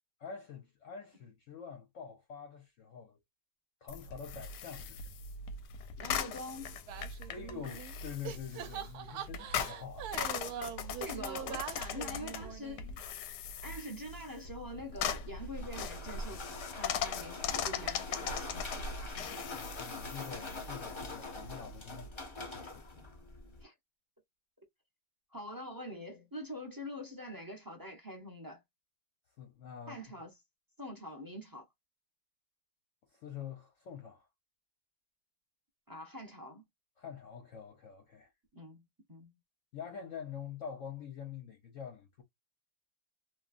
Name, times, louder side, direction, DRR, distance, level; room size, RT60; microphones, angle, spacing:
voice 1, 0.2-3.2 3.8-5.1 7.3-10.1 19.5-22.1 22.4-22.8 29.4-30.0 33.1-34.3 37.0-38.3 39.7-42.2, left 7 dB, 60° left, 0.8 m, -46 dB
sound 1, 3.9-22.1, left 6 dB, 90° left, 1.2 m, -40 dB
voice 2, 6.0-6.8 11.0-12.9 13.6-19.1 23.6-23.7 25.3-28.6 29.9-30.3 30.8-31.7 35.9-36.6 38.5-39.3, left 1 dB, 25° right, 0.4 m, -45 dB
sound 2, 6.9-8.0 8.2-13.0, right 9 dB, 75° right, 1.0 m, -43 dB
sound 3, 14.9-23.6, left 3 dB, 45° left, 0.3 m, -44 dB
3.1 x 2.3 x 2.4 m
omnidirectional pair, 1.8 m